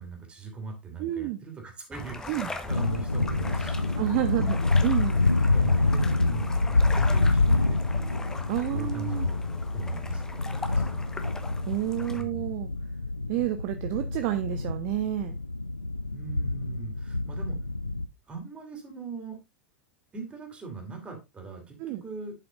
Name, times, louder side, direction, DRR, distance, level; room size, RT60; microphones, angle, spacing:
voice 1, 0.0-4.1 5.5-8.2 8.7-9.4 9.7-11.1 12.1-12.4 16.1-17.6 18.3-19.4 20.1-22.3, right 4 dB, 20° right, 2 dB, 3.0 m, -40 dB
voice 2, 1.0-1.4 2.3-2.5 4.0-5.2 8.5-9.3 11.7-12.7 13.3-15.3 21.8-22.0, right 15 dB, 45° right, 9 dB, 0.7 m, -29 dB
sound 1, 1.9-12.2, left 3 dB, 10° left, 1.1 m, -39 dB
sound 2, 2.7-18.1, left 3 dB, 85° left, 0.4 m, -27 dB
11.0 x 5.9 x 2.5 m, 0.24 s
figure-of-eight pair, 85°, 6 cm